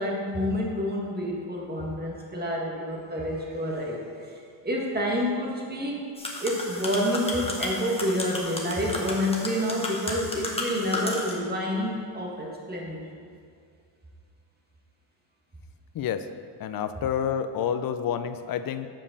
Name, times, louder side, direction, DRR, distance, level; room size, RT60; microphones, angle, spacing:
voice 1, 0.0-6.0 6.4-13.0, equal, 20° right, -2 dB, 1.7 m, -28 dB
sound 1, 6.2-11.3, left 2 dB, 15° left, 1.2 m, -33 dB
voice 2, 15.9-16.3 16.6-18.9, left 8 dB, 50° left, 11 dB, 0.5 m, -28 dB
7.4 x 5.3 x 6.5 m, 2.2 s
cardioid pair, 115°, 46 cm